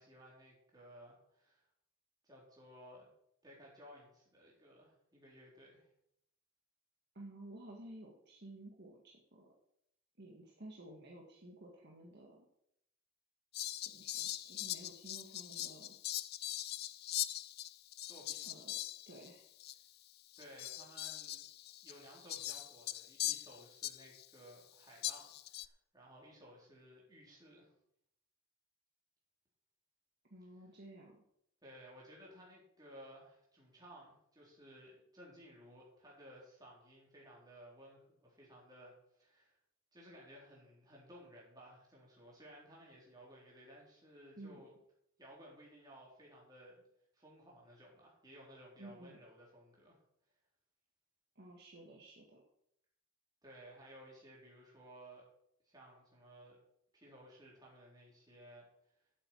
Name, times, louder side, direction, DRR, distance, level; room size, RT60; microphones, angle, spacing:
voice 1, 0.0-1.6 2.2-3.1 3.4-5.9 18.0-18.5 20.4-21.4 21.8-27.7 31.6-39.6 39.9-44.7 45.2-46.8 47.1-50.0 53.4-55.3 55.6-56.6 56.9-58.7, equal, 20° right, -4 dB, 3.8 m, -57 dB
voice 2, 7.1-9.5 10.2-12.5 13.8-16.0 18.4-18.8 19.1-19.5 30.3-31.2 44.4-44.6 48.8-49.2 51.4-52.4, right 1 dB, 50° right, -1 dB, 1.8 m, -53 dB
Fowl, 13.5-19.3 19.6-19.7 20.3-24.3 25.0-25.7, left 14 dB, 45° left, 0.4 m, -41 dB
8.7 x 8.0 x 8.5 m, 0.75 s
head